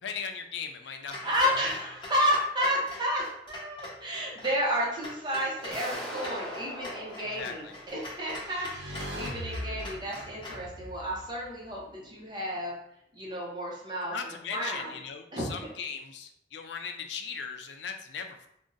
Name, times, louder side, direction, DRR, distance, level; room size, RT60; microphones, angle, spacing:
voice 1, 0.0-1.6 7.3-7.7 14.0-18.5, left 6 dB, 85° left, 6 dB, 0.4 m, -38 dB
Clock, 1.1-10.7, left 2 dB, 30° left, 0.8 m, -43 dB
voice 2, 1.2-12.7 13.1-14.9 15.3-15.5, equal, 25° right, -3 dB, 0.6 m, -31 dB
sound 1, 5.7-8.5, right 1 dB, 5° left, 1.1 m, -41 dB
sound 2, 7.9-12.2, equal, 80° right, 0.6 m, -41 dB
2.5 x 2.1 x 3.8 m, 0.76 s
head